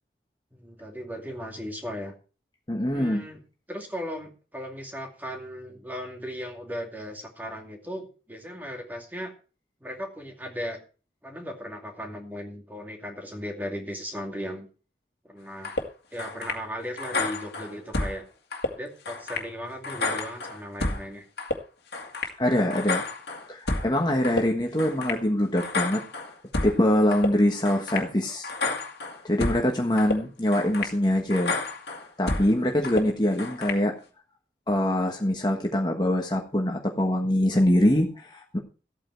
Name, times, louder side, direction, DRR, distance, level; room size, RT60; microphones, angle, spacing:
voice 1, 0.5-2.1 2.9-3.4 3.7-9.3 9.8-10.8 11.2-14.7 15.2-15.8 16.1-18.2 18.8-21.3, equal, 10° right, 2 dB, 2.4 m, -37 dB
voice 2, 2.7-3.2 22.4-23.0 23.5-26.0 26.6-28.5 29.2-31.5 32.2-33.9 34.7-38.6, left 1 dB, 25° left, 2 dB, 1.4 m, -24 dB
sound 1, 15.6-15.8 16.2-16.6 17.0-18.2 18.5-18.7 19.1-19.5 19.8-21.0 21.4-21.6 21.9-22.3 22.7-23.9 24.2-24.4 24.8-25.2 25.6-26.8 27.1-27.3 27.6-28.1 28.4-29.6 30.0-30.2 30.5-30.9 31.3-32.5 32.8-33.0 33.4-33.8, left 2 dB, 70° left, 2.1 m, -30 dB
14.0 x 8.8 x 4.6 m, 0.36 s
head